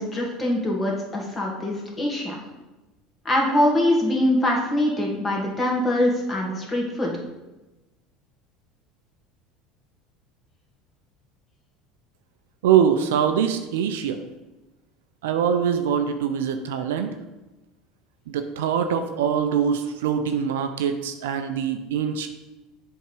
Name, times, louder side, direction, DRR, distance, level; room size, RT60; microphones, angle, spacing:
voice 1, 0.0-2.3 3.3-7.1, left 1 dB, 25° left, -1 dB, 2.1 m, -23 dB
voice 2, 12.6-14.2 15.2-17.1 18.3-22.3, right 8 dB, 70° right, 7 dB, 0.5 m, -23 dB
7.9 x 3.6 x 4.8 m, 1.1 s
hypercardioid pair, 70°, 0 cm